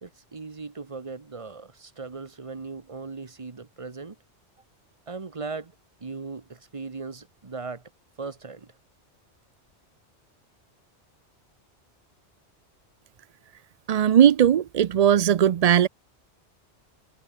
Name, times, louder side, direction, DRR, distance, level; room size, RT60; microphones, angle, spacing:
voice 1, 0.0-4.2 5.1-5.7 6.0-7.8 8.2-8.7, right 4 dB, 30° right, 1.1 m, -38 dB
voice 2, 13.9-15.9, right 9 dB, 60° right, 0.4 m, -18 dB
omnidirectional pair, 1.2 m